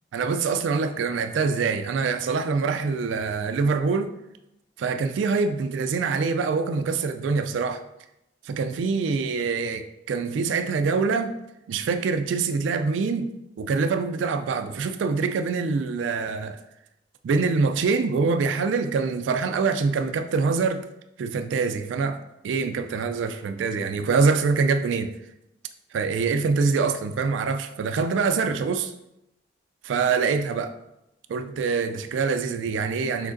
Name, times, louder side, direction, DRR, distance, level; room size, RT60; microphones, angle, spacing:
voice 1, 0.1-4.1 4.8-7.8 8.4-11.3 11.7-13.3 13.6-16.6 17.2-20.8 21.2-25.1 25.9-28.9 29.8-30.8 31.3-33.3, right 4 dB, 80° right, 9 dB, 0.3 m, -25 dB
6.2 x 3.2 x 2.5 m, 0.87 s
head